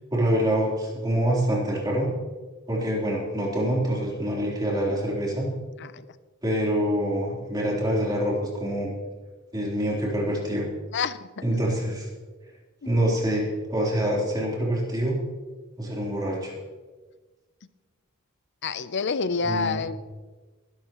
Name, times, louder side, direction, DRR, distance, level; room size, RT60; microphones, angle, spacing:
voice 1, 0.1-2.1 2.7-5.5 6.4-8.9 9.5-10.7 11.4-12.1 12.9-15.2 15.8-16.5 19.4-19.8, right 1 dB, 20° right, -4 dB, 3.8 m, -25 dB
voice 2, 10.9-11.4 12.8-12.9 18.6-20.0, left 5 dB, 50° left, 14 dB, 0.6 m, -28 dB
20.5 x 12.0 x 3.1 m, 1.3 s
head